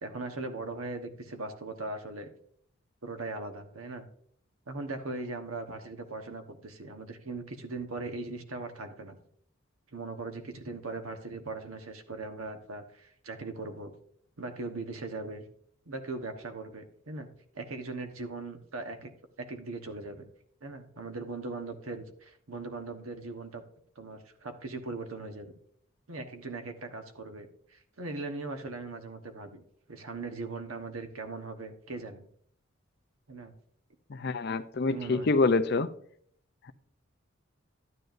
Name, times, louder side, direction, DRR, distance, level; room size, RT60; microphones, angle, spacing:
voice 1, 0.0-2.3 3.0-4.1 4.7-9.2 9.9-13.9 14.4-15.4 15.8-17.3 17.5-19.1 19.4-20.2 20.6-23.6 24.0-25.5 26.1-29.6 29.9-32.3 33.3-33.5 34.9-35.4, right 3 dB, 90° right, 6 dB, 1.2 m, -39 dB
voice 2, 34.1-35.9, left 3 dB, 50° left, 11 dB, 0.5 m, -26 dB
12.0 x 9.7 x 2.6 m, 0.63 s
head